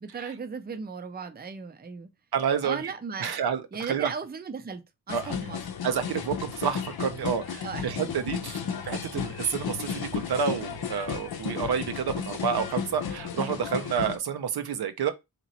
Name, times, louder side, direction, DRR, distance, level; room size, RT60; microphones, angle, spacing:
voice 1, 0.0-2.1 2.6-3.4 3.7-4.8 5.1-5.6 7.6-8.2 8.6-8.8, right 5 dB, 25° right, 0.5 m, -37 dB
voice 2, 2.3-2.8 3.2-3.6 3.9-4.1 5.1-5.4 5.8-8.6 8.8-15.1, right 7 dB, 90° right, 0.7 m, -29 dB
sound 1, 5.1-14.2, left 7 dB, 75° left, 0.7 m, -34 dB
3.0 x 2.9 x 4.0 m
wide cardioid pair, 105°, 37 cm